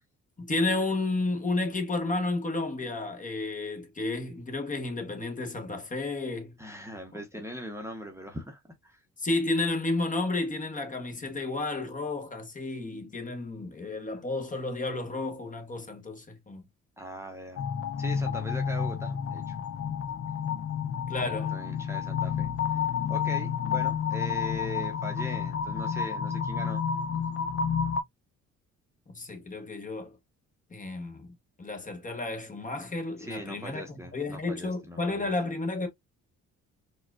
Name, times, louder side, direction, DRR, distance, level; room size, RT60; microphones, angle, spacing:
voice 1, 0.4-6.5 9.2-16.7 21.1-21.5 29.1-30.2 30.7-33.8 34.1-35.9, left 2 dB, 25° left, 1.1 m, -32 dB
voice 2, 6.6-9.0 17.0-17.6 18.0-19.6 21.2-26.8 33.2-35.3, equal, 10° right, 0.8 m, -40 dB
sound 1, 17.6-28.0, left 7 dB, 50° left, 0.7 m, -30 dB
4.2 x 2.3 x 2.4 m
cardioid pair, 90°, 30 cm